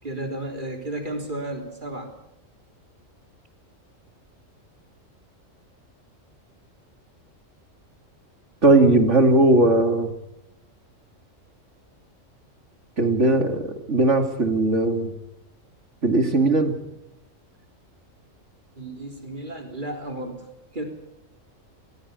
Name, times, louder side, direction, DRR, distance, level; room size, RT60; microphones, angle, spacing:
voice 1, 0.0-2.1 18.8-20.4 20.7-20.8, right 1 dB, 35° right, 4 dB, 3.9 m, -33 dB
voice 2, 8.6-10.1 13.0-15.1 16.0-16.7, right 2 dB, 60° right, 6 dB, 2.9 m, -18 dB
25.0 x 17.0 x 8.2 m, 0.85 s
omnidirectional pair, 1.4 m